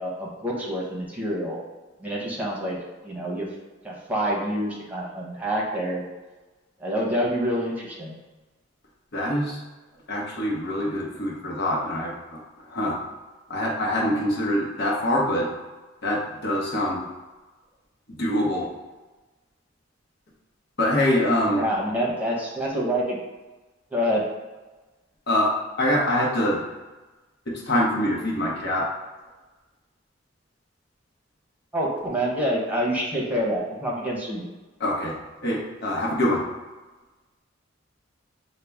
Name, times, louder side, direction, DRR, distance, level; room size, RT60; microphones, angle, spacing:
voice 1, 0.0-1.6 2.0-2.8 3.0-3.5 3.8-6.0 6.8-8.1 21.5-23.2 23.9-24.2 31.7-34.4, equal, 10° right, -3 dB, 0.9 m, -27 dB
voice 2, 9.1-9.6 10.1-13.0 13.5-15.5 16.0-17.1 18.1-18.7 20.8-21.6 25.3-25.5 25.8-26.6 27.5-28.9 34.8-36.4, left 1 dB, 60° left, -2 dB, 1.0 m, -24 dB
5.6 x 2.2 x 3.4 m, 1.2 s
head